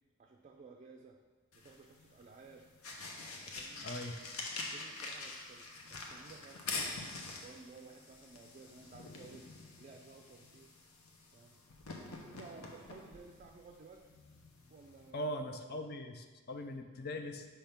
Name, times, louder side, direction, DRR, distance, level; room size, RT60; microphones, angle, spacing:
voice 1, 0.2-1.2 1.6-2.7 3.3-3.9 4.6-6.9 7.4-9.5 9.8-10.7 11.3-11.6 12.1-14.0 14.7-15.4 15.7-15.8, right 4 dB, 35° right, 1 dB, 0.4 m, -55 dB
sound 1, 1.5-15.1, left 3 dB, 75° left, 0.8 m, -46 dB
voice 2, 3.8-4.1 15.1-17.5, left 1 dB, 45° left, 6 dB, 0.5 m, -40 dB
5.6 x 3.5 x 5.7 m, 1.4 s
head